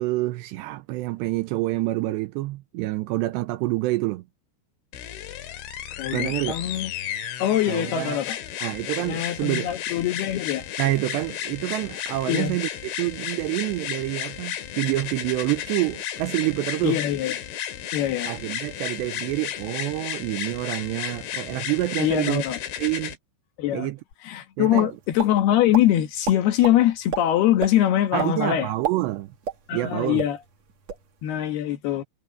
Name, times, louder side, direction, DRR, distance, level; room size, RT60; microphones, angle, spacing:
voice 1, 0.0-4.2 6.1-6.6 7.7-8.2 8.6-9.7 10.8-17.0 18.3-22.4 22.8-23.1 23.7-24.0 24.6-24.9 28.1-29.3 29.7-30.2, right 18 dB, 85° right, 2.6 m, -27 dB
sound 1, 4.9-23.2 24.1-24.2, left 10 dB, 85° left, 4.2 m, -33 dB
voice 2, 6.0-6.9 7.4-8.4 9.1-10.6 12.3-12.6 16.8-17.3 17.9-18.3 22.0-22.6 23.6-23.9 24.2-28.7 29.7-30.4 31.2-32.0, left 12 dB, 65° left, 3.2 m, -23 dB
sound 2, 24.7-25.3 25.7-25.9 26.2-26.8 27.1-27.2 27.6-27.7 28.2-28.3 28.7-29.9 30.2-30.3 30.7-31.0, right 7 dB, 45° right, 2.7 m, -29 dB
omnidirectional pair, 5.4 m